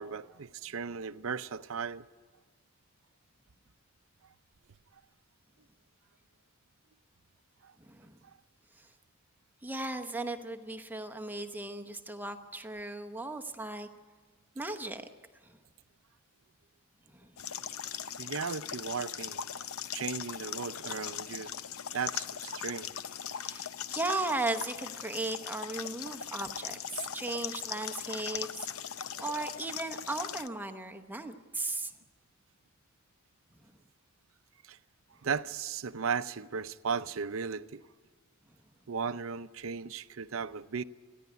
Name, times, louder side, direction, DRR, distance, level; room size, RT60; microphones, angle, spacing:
voice 1, 0.0-2.1 7.6-7.7 18.2-19.4 19.9-21.5 21.9-22.9 34.6-34.8 35.2-37.8 38.9-40.8, right 6 dB, 70° right, 0.6 m, -36 dB
voice 2, 7.8-8.2 8.8-8.9 9.6-13.9 14.5-15.1 15.4-15.6 17.1-17.3 23.4-28.7 29.2-31.9 33.6-33.7, right 2 dB, 10° right, 0.9 m, -36 dB
sound 1, 17.4-30.5, left 9 dB, 90° left, 0.7 m, -39 dB
29.0 x 11.0 x 9.5 m
head